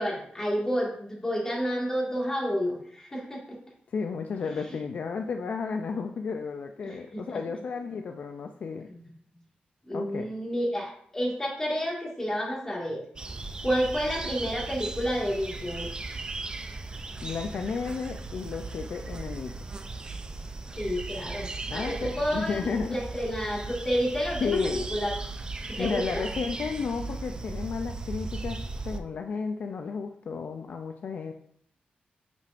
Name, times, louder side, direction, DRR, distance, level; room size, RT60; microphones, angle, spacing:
voice 1, 0.0-3.6 6.8-7.4 8.9-9.1 9.9-13.0 13.6-15.9 20.8-25.1 25.7-26.3, equal, 15° left, -3 dB, 1.9 m, -30 dB
voice 2, 3.9-8.9 9.9-10.3 17.2-19.8 21.7-23.0 24.4-24.8 25.8-31.3, left 5 dB, 55° left, 5 dB, 0.4 m, -33 dB
sound 1, 13.2-29.0, right 3 dB, 25° right, 0.4 m, -37 dB
8.4 x 4.9 x 2.5 m, 0.65 s
wide cardioid pair, 150°, 3 cm